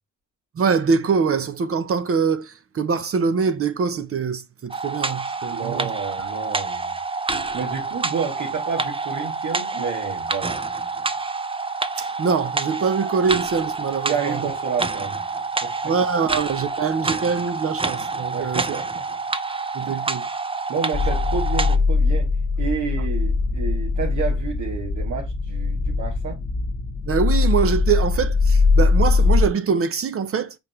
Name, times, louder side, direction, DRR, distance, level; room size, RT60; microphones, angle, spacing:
voice 1, 0.5-5.9 12.0-14.4 15.8-18.6 19.7-20.3 27.0-30.6, right 5 dB, 45° right, 1.2 m, -23 dB
sound 1, 4.7-21.8, right 3 dB, 20° right, 0.8 m, -28 dB
voice 2, 5.5-7.0 7.5-10.6 14.0-15.2 15.6-15.7 18.3-19.0 19.9-20.0 20.7-22.3 22.6-26.3, right 6 dB, 75° right, 2.9 m, -30 dB
sound 2, 20.9-29.5, left 4 dB, 45° left, 1.6 m, -21 dB
5.8 x 5.2 x 3.2 m
cardioid pair, 90°, 30 cm